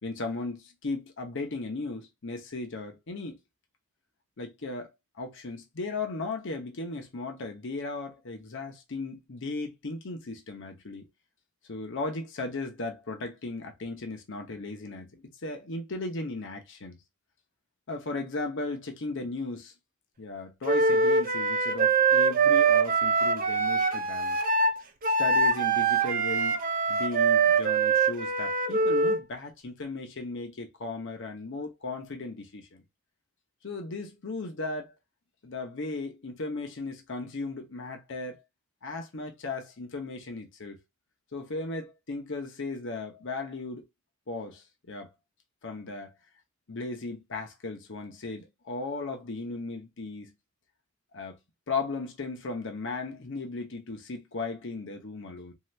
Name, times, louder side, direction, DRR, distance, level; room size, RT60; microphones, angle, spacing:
voice 1, 0.0-3.4 4.4-4.9 5.2-11.1 11.7-17.0 17.9-19.7 20.2-24.4 25.2-26.6 26.9-32.8 33.6-34.9 35.4-38.4 38.8-40.8 41.3-43.8 44.3-45.1 45.6-46.1 46.7-50.3 51.1-51.4 51.7-55.5, left 3 dB, 60° left, 0.8 m, -36 dB
Wind instrument woodwind instrument, 20.7-29.2, right 4 dB, 40° right, 0.5 m, -24 dB
2.7 x 2.4 x 3.2 m
head